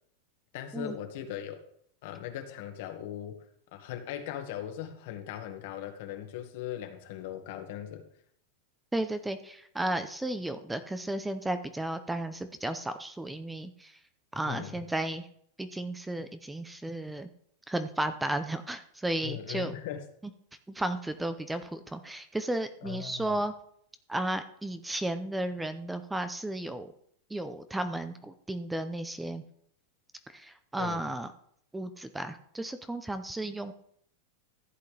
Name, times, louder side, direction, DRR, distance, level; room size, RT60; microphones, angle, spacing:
voice 1, 0.5-1.6 2.0-3.4 3.7-8.0 14.4-14.8 19.2-20.0 22.8-23.4 30.8-31.0, left 10 dB, 60° left, 6 dB, 1.7 m, -39 dB
voice 2, 8.9-14.0 14.3-15.3 15.6-17.3 17.7-19.7 20.7-23.5 24.1-26.9 27.3-29.4 30.3-31.3 31.7-33.7, right 1 dB, 5° right, 10 dB, 0.6 m, -34 dB
14.5 x 8.2 x 3.4 m, 0.67 s
supercardioid pair, 150°, 0 cm